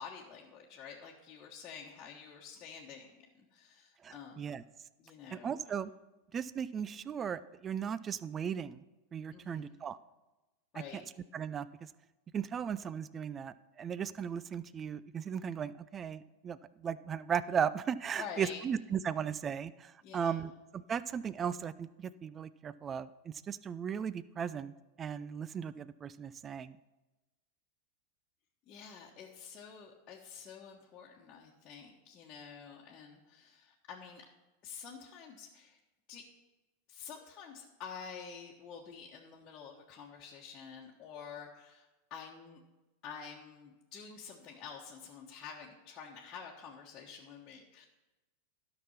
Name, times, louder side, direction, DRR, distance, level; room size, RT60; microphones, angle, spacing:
voice 1, 0.0-4.7 5.0-5.7 9.3-9.8 10.7-11.1 18.2-18.6 20.0-20.4 28.7-34.2 34.6-35.8 36.1-36.2 36.9-42.6 43.0-47.9, left 6 dB, 35° left, -3 dB, 1.4 m, -49 dB
voice 2, 4.0-4.6 5.3-5.9 6.3-8.8 9.1-10.0 10.9-11.0 11.3-11.9 12.3-24.7 25.0-26.8, right 7 dB, 25° right, 17 dB, 0.4 m, -37 dB
12.5 x 6.1 x 5.8 m, 1.1 s
hypercardioid pair, 95°, 0 cm